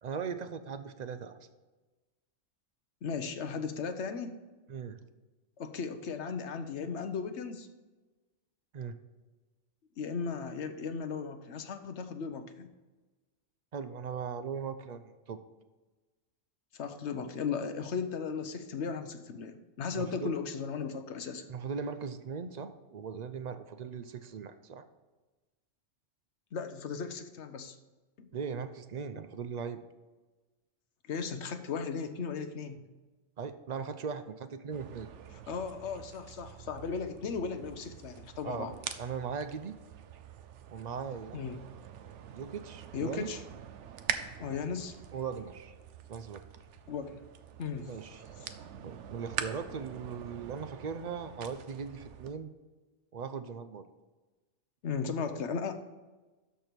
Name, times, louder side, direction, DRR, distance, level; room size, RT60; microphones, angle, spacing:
voice 1, 0.0-1.4 4.7-5.0 8.7-9.0 13.7-15.4 19.9-20.3 21.5-24.8 28.3-29.8 33.4-35.1 38.4-38.7 39.0-39.8 40.7-41.4 42.3-43.3 45.1-45.7 46.1-46.4 47.9-48.2 48.8-52.5 53.1-53.9, right 6 dB, 50° right, 10 dB, 0.5 m, -39 dB
voice 2, 3.0-4.3 5.6-7.7 10.0-12.7 16.7-21.5 26.5-27.8 31.1-32.8 35.3-38.8 41.3-41.6 42.9-43.4 44.4-45.0 46.9-47.2 47.6-47.9 48.4-48.5 54.8-55.7, left 5 dB, 65° left, 8 dB, 1.1 m, -36 dB
sound 1, 34.7-52.3, right 8 dB, 75° right, 1.0 m, -44 dB
12.5 x 4.6 x 5.1 m, 1.2 s
omnidirectional pair, 1.3 m